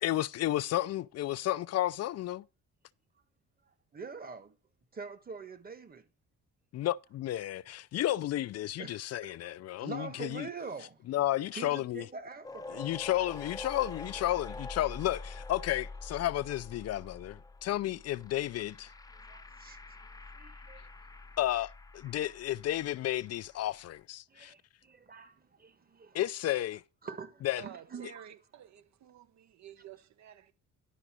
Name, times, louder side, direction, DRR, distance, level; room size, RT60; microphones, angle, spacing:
voice 1, 0.0-2.4 6.7-10.5 11.1-12.1 12.7-18.9 21.4-24.5 26.1-26.8 27.4-27.6, left 14 dB, 55° left, 0.4 m, -32 dB
voice 2, 3.9-4.5 4.9-6.0 8.8-9.5 9.8-11.0 11.5-12.9 19.2-20.8 22.1-22.3 24.3-26.2 27.0-28.2, right 5 dB, 30° right, 1.4 m, -45 dB
sound 1, 12.4-23.5, left 3 dB, 10° left, 0.7 m, -46 dB
voice 3, 27.6-30.5, right 10 dB, 65° right, 1.0 m, -51 dB
11.0 x 3.9 x 6.1 m
cardioid pair, 90°, 30 cm